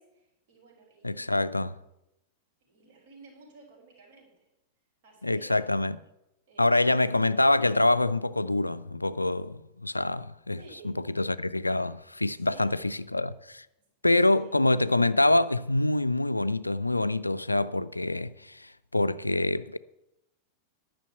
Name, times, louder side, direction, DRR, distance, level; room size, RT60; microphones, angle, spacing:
voice 1, 0.0-1.8 2.6-4.5 5.0-5.8 6.5-7.2 10.5-11.0 12.4-12.9 13.8-13.9 14.3-14.5, right 4 dB, 50° right, 5.2 m, -54 dB
voice 2, 1.0-1.7 5.2-6.0 6.6-10.6 10.8-13.7 14.0-19.8, left 2 dB, 85° left, 0.4 m, -26 dB
11.0 x 6.2 x 8.1 m
figure-of-eight pair, 90°, 0 cm